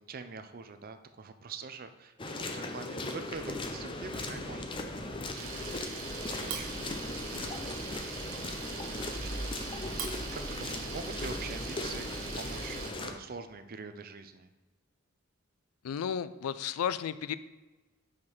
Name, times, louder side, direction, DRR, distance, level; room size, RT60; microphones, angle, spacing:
voice 1, 0.1-6.7 7.1-9.4 9.9-10.0 10.3-14.5, right 4 dB, 40° right, 9 dB, 0.5 m, -45 dB
sound 1, 2.2-13.1, left 2 dB, 25° left, 0.5 m, -38 dB
sound 2, 3.3-13.1, equal, 40° left, 1.6 m, -51 dB
Camera, 5.4-12.9, right 4 dB, 65° right, 0.9 m, -40 dB
voice 2, 15.8-17.3, left 8 dB, 80° left, 15 dB, 0.3 m, -33 dB
4.9 x 4.6 x 5.5 m, 1.2 s
head